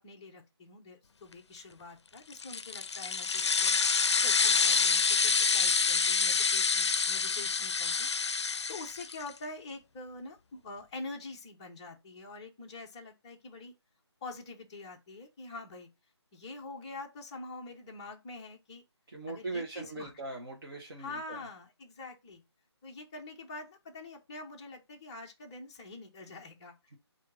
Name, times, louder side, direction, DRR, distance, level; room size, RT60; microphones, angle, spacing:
voice 1, 0.0-3.7 4.2-8.1 8.4-13.7 14.2-15.9 16.3-18.8 19.3-20.1 21.0-22.4 22.8-26.7, left 3 dB, 10° left, 0.5 m, -45 dB
sound 1, 2.3-9.3, left 5 dB, 75° left, 0.4 m, -27 dB
voice 2, 19.1-21.4, right 2 dB, 50° right, 1.0 m, -40 dB
4.4 x 2.6 x 3.6 m
figure-of-eight pair, 160°, 15 cm